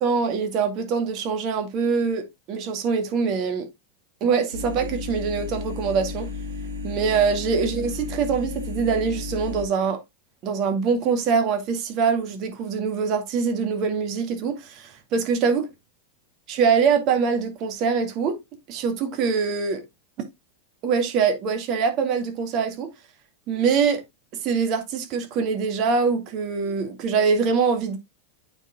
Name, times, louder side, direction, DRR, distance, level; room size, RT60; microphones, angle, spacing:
voice 1, 0.0-3.7 4.2-6.3 6.8-10.0 10.4-15.7 16.5-18.4 18.7-19.8 20.8-22.9 23.5-24.0 24.4-28.0, right 5 dB, 45° right, 2.1 m, -23 dB
sound 1, 4.5-9.6, left 4 dB, 80° right, 2.4 m, -33 dB
8.8 x 4.4 x 3.7 m
hypercardioid pair, 95°, 0 cm